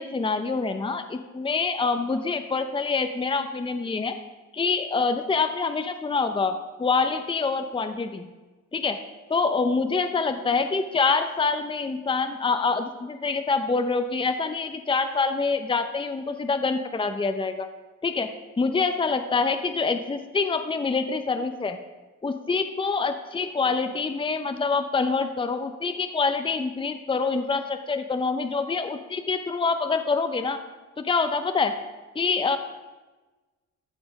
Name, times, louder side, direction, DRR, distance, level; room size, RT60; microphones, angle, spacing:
voice 1, 0.0-4.2 4.5-8.3 8.7-9.0 9.3-17.7 18.0-18.3 18.6-21.8 22.2-30.6 31.0-31.7 32.1-32.6, left 4 dB, 15° left, 8 dB, 0.7 m, -26 dB
14.0 x 6.1 x 4.9 m, 1.2 s
cardioid pair, 90°, 30 cm